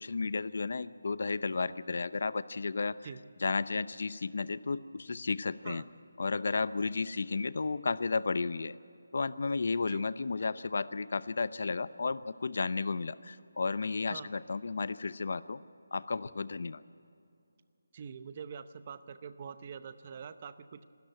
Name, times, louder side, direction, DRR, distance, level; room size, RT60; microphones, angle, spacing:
voice 1, 0.0-3.0 3.4-5.8 6.2-8.8 9.1-15.6 15.9-16.8, left 4 dB, 50° left, 16 dB, 0.6 m, -33 dB
voice 2, 17.9-20.8, right 6 dB, 25° right, 13 dB, 0.7 m, -45 dB
26.5 x 13.0 x 9.0 m, 2.5 s
hypercardioid pair, 175°, 0 cm